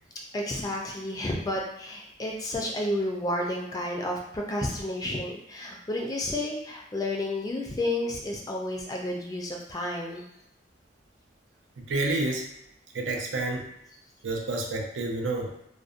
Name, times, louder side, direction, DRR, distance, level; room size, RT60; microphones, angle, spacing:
voice 1, 0.3-10.2, left 1 dB, 20° left, -1 dB, 0.3 m, -31 dB
voice 2, 11.8-12.5 12.9-13.7 14.2-15.5, right 2 dB, 85° right, 1 dB, 0.5 m, -29 dB
2.6 x 2.0 x 2.4 m, 0.79 s
head